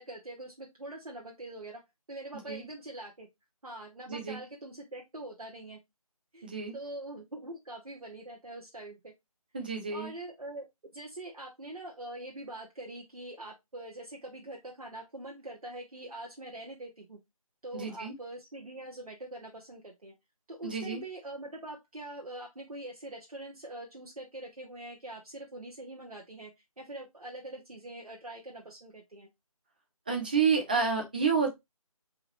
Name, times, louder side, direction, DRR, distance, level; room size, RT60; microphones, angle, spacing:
voice 1, 0.0-1.8 2.1-3.3 3.6-5.8 6.3-9.1 9.9-10.7 10.9-17.2 17.6-20.1 20.5-26.5 26.8-29.3, right 1 dB, 75° right, 1.1 m, -43 dB
voice 2, 4.1-4.4 6.4-6.7 9.5-10.1 17.7-18.1 20.6-21.0 30.1-31.5, right 5 dB, 15° right, 0.6 m, -29 dB
4.0 x 3.6 x 3.0 m
figure-of-eight pair, 155°, 19 cm